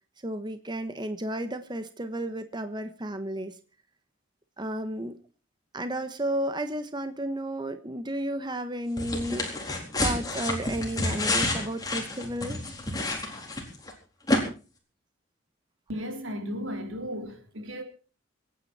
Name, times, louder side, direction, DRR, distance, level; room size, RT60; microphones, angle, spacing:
voice 1, 0.2-3.6 4.6-5.2 5.7-12.6, right 1 dB, 25° right, 1.1 m, -33 dB
sound 1, 9.0-13.9 14.3-14.4, left 2 dB, 20° left, 4.0 m, -29 dB
voice 2, 15.9-17.8, equal, 90° right, 3.5 m, -35 dB
25.5 x 9.6 x 4.3 m
head